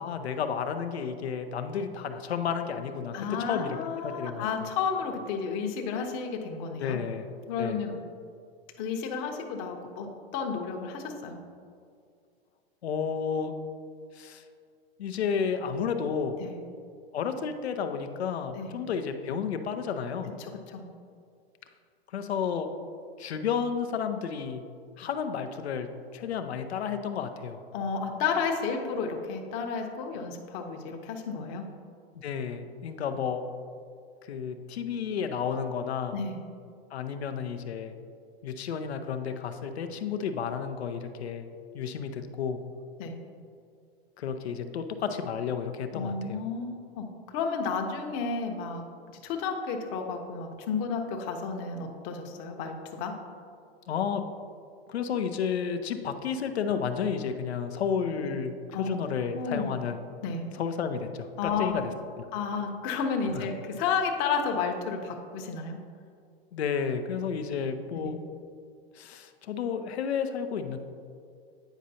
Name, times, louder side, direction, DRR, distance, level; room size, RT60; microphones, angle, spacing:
voice 1, 0.0-3.8 4.0-4.7 6.8-7.3 7.6-7.8 12.8-13.5 14.1-14.4 15.0-16.4 17.1-20.3 22.1-22.7 23.2-24.7 25.0-25.9 26.1-27.6 32.1-33.4 34.3-36.2 36.9-38.0 38.4-41.5 41.7-42.6 44.2-46.4 53.9-54.2 54.9-60.0 60.5-61.9 62.2-62.3 63.3-63.5 66.5-68.2 68.9-70.8, left 6 dB, 85° left, 7 dB, 0.6 m, -31 dB
voice 2, 3.1-7.0 7.5-7.9 8.8-10.1 10.3-11.4 16.4-16.6 18.6-18.8 20.4-20.9 27.7-31.6 36.1-36.4 43.0-43.2 45.9-47.1 47.3-48.8 49.2-53.1 58.2-58.3 58.7-58.9 59.3-59.7 60.2-60.4 61.4-61.8 62.3-65.8 67.9-68.1, left 5 dB, 40° left, 3 dB, 0.9 m, -32 dB
9.0 x 5.1 x 2.8 m, 2.3 s
hypercardioid pair, 120°, 31 cm